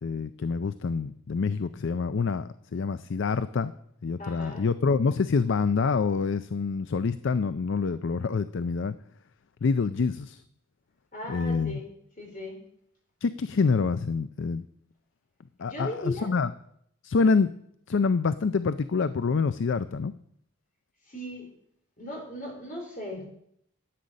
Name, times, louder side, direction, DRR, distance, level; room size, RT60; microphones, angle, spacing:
voice 1, 0.0-3.7 4.0-8.9 9.6-10.4 11.3-11.8 13.2-14.6 15.6-16.5 17.0-17.5 17.9-20.1, left 4 dB, 55° left, 13 dB, 0.4 m, -26 dB
voice 2, 4.2-4.6 11.1-11.9 12.2-12.6 15.6-16.4 21.1-21.4 22.0-23.3, left 1 dB, 35° left, -1 dB, 4.3 m, -37 dB
12.0 x 8.5 x 6.4 m, 0.71 s
head